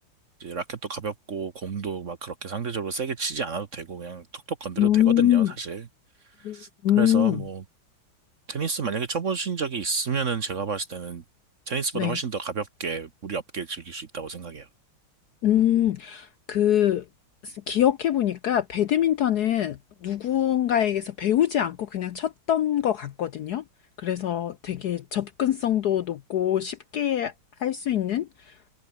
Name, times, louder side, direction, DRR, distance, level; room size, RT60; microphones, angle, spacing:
voice 1, 0.4-5.8 6.4-6.7 7.0-7.6 8.5-11.2 11.7-14.7, right 5 dB, 45° right, 1.2 m, -31 dB
voice 2, 4.8-5.5 6.4-7.4 11.9-12.2 15.4-17.0 17.4-23.6 24.0-27.3 27.6-28.5, left 11 dB, 65° left, 1.0 m, -24 dB
omnidirectional pair, 2.3 m